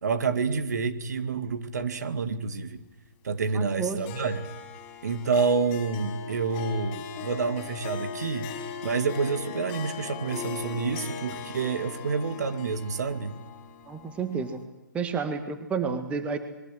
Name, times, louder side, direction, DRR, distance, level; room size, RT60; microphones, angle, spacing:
voice 1, 0.0-2.8 3.2-4.5 5.0-8.5 8.8-13.4, right 5 dB, 55° right, 10 dB, 2.5 m, -28 dB
voice 2, 3.5-4.0 13.9-14.7 14.9-16.4, right 5 dB, 10° right, 9 dB, 1.8 m, -30 dB
Harp, 4.0-14.6, left 5 dB, 25° left, 5.1 m, -39 dB
28.5 x 22.5 x 7.9 m, 0.95 s
figure-of-eight pair, 135°, 11 cm